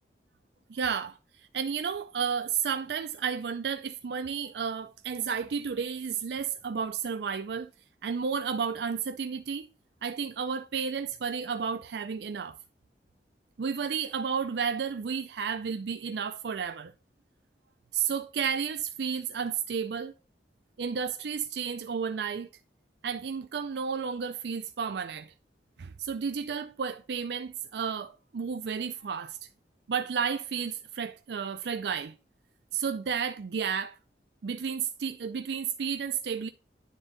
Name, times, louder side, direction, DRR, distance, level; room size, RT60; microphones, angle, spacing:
voice 1, 0.7-7.7 8.0-9.7 10.0-12.6 13.6-16.9 17.9-20.1 20.8-22.5 23.0-25.3 25.8-29.4 29.9-32.1 32.7-34.0 34.4-36.5, right 6 dB, 70° right, 0.4 m, -32 dB
9.9 x 3.6 x 3.8 m
head